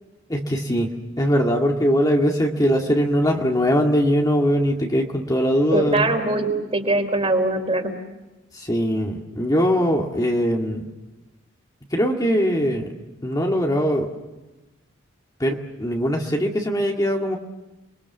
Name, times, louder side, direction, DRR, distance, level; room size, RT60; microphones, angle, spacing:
voice 1, 0.3-0.9 1.2-6.1 8.5-10.9 11.9-12.9 13.2-14.1 15.4-17.4, equal, 20° left, 1 dB, 2.1 m, -21 dB
voice 2, 5.7-7.9, right 2 dB, 30° right, 4 dB, 4.1 m, -22 dB
30.0 x 22.5 x 7.2 m, 1.1 s
head